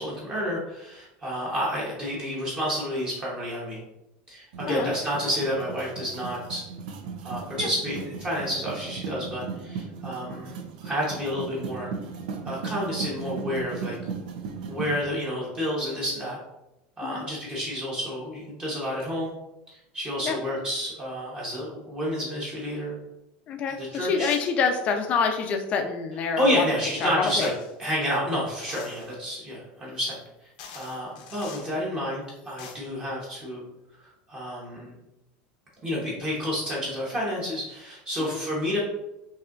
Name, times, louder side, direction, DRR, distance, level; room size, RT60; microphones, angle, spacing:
voice 1, 0.0-3.8 4.3-6.6 7.2-11.9 12.4-13.9 14.7-16.4 17.0-19.3 19.9-23.0 23.7-24.3 26.4-27.5 27.8-30.2 30.7-33.6 34.3-35.0 35.8-38.8, equal, 20° right, -5 dB, 1.0 m, -30 dB
sound 1, 4.5-15.0, right 5 dB, 85° right, 0.6 m, -37 dB
voice 2, 23.5-26.6 27.0-27.5 38.2-38.4, left 5 dB, 30° left, 5 dB, 0.5 m, -27 dB
sound 2, 27.3-27.7 28.7-29.1 30.1-30.2 30.6-31.7 32.3-32.7, left 6 dB, 70° left, 0.7 m, -44 dB
5.5 x 2.7 x 2.5 m, 0.89 s
supercardioid pair, 165°, 4 cm